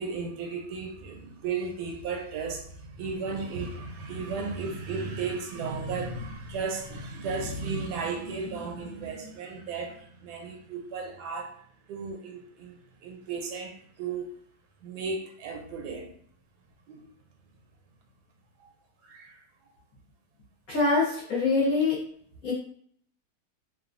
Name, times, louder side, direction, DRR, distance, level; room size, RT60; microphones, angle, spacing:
voice 1, 0.0-11.6 11.9-14.3 14.8-16.1 16.9-17.0 18.6-18.7 19.0-19.4, right 4 dB, 80° right, 1.2 m, -35 dB
voice 2, 20.7-22.0 22.4-22.5, left 3 dB, 60° left, 1.3 m, -24 dB
3.0 x 2.2 x 2.4 m
omnidirectional pair, 1.7 m